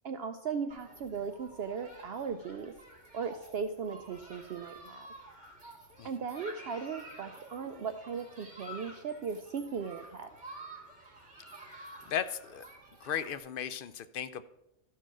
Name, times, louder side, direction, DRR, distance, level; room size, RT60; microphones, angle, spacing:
voice 1, 0.0-2.7 3.1-5.1 6.0-10.3, right 6 dB, 60° right, 7 dB, 0.8 m, -37 dB
Human group actions, 0.7-13.4, right 1 dB, 35° right, 2.3 m, -51 dB
voice 2, 12.1-12.6 13.0-14.4, left 9 dB, 60° left, 12 dB, 0.6 m, -36 dB
13.0 x 4.6 x 6.1 m, 0.89 s
omnidirectional pair, 1.3 m